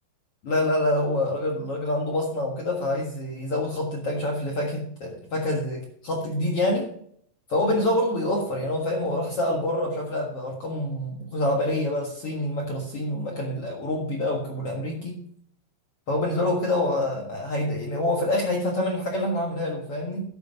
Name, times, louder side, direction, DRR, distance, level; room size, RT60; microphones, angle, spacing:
voice 1, 0.4-6.9 7.5-15.2 16.1-20.2, left 1 dB, 55° left, 0 dB, 1.7 m, -26 dB
11.0 x 8.2 x 5.5 m, 0.64 s
omnidirectional pair, 4.8 m